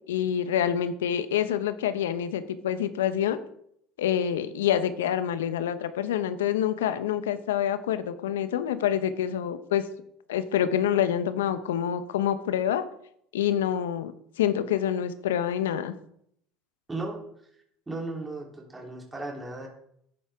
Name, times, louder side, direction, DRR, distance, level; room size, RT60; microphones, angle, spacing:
voice 1, 0.1-3.4 4.0-9.9 10.3-12.9 13.3-14.1 14.4-15.9, left 10 dB, 80° left, 12 dB, 0.9 m, -27 dB
voice 2, 17.9-19.7, right 2 dB, 15° right, -1 dB, 3.3 m, -35 dB
13.5 x 9.7 x 3.6 m, 0.70 s
hypercardioid pair, 75°, 0 cm